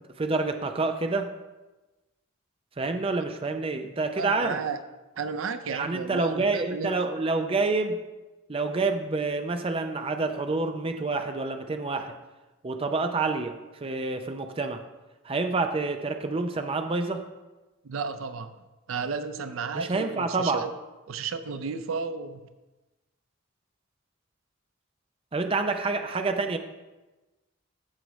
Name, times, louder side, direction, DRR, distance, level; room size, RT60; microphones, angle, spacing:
voice 1, 0.2-1.3 2.8-4.6 5.7-8.0 8.5-12.1 12.6-14.8 15.2-17.2 19.7-20.6 25.3-26.6, right 3 dB, 30° right, 6 dB, 0.5 m, -28 dB
voice 2, 4.1-4.8 5.2-6.9 17.8-18.6 18.9-20.7 21.1-22.5, right 5 dB, 85° right, 11 dB, 0.5 m, -33 dB
14.0 x 4.8 x 3.1 m, 1.1 s
head